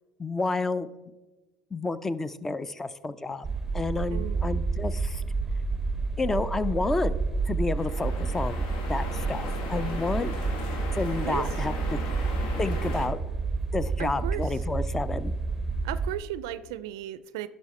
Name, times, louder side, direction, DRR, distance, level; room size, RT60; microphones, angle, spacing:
voice 1, 0.2-0.9 1.7-3.5 3.7-5.2 6.2-7.2 7.5-8.6 8.9-10.3 10.9-12.0 12.6-13.2 13.7-15.3, left 3 dB, 15° left, 16 dB, 0.5 m, -30 dB
sound 1, 3.4-16.1, right 4 dB, 15° right, 0.8 m, -30 dB
voice 2, 4.1-4.4 11.2-11.5 14.0-14.5 15.8-17.5, right 13 dB, 75° right, 15 dB, 0.4 m, -35 dB
sound 2, 7.8-13.1, left 3 dB, 70° left, 1.9 m, -37 dB
11.0 x 6.2 x 4.2 m, 1.2 s
hypercardioid pair, 90°, 2 cm